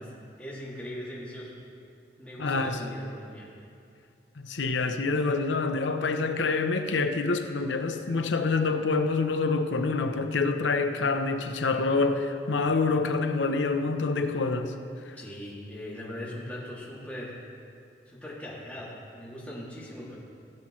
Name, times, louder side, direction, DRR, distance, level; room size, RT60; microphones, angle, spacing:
voice 1, 0.0-1.6 2.2-3.6 15.2-17.3 18.1-20.2, left 1 dB, 5° left, -8 dB, 2.4 m, -40 dB
voice 2, 2.4-2.8 4.4-14.7 15.1-15.2, left 3 dB, 85° left, 7 dB, 0.7 m, -26 dB
17.5 x 8.7 x 3.2 m, 2.4 s
head